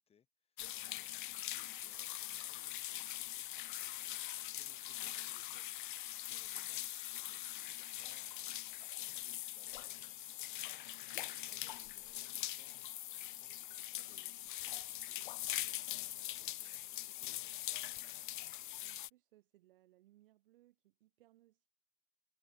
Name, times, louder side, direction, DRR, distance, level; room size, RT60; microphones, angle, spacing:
voice 1, 0.0-5.8 6.2-6.8 7.3-15.8 16.3-17.7, left 8 dB, 15° left, 7.5 m, -71 dB
sound 1, 0.6-19.1, left 14 dB, 40° left, 0.6 m, -43 dB
voice 2, 18.8-21.7, right 15 dB, 45° right, 3.4 m, -68 dB
figure-of-eight pair, 115°, 37 cm